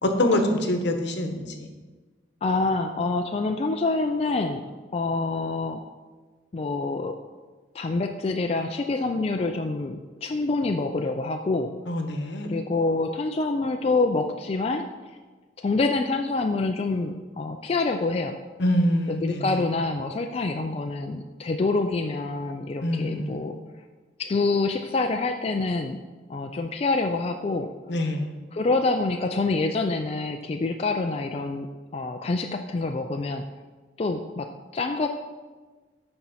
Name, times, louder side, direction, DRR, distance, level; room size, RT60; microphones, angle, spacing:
voice 1, 0.0-1.7 11.9-12.6 18.6-19.4 22.8-23.6 27.9-28.3, left 1 dB, 70° left, 5 dB, 0.9 m, -25 dB
voice 2, 2.4-4.6 4.9-5.8 6.5-7.2 7.7-11.7 12.4-14.9 15.6-18.4 19.1-23.6 24.2-26.0 26.3-27.7 28.5-33.4 34.0-35.1, left 3 dB, 35° left, 4 dB, 0.3 m, -26 dB
11.5 x 4.3 x 4.2 m, 1.3 s
head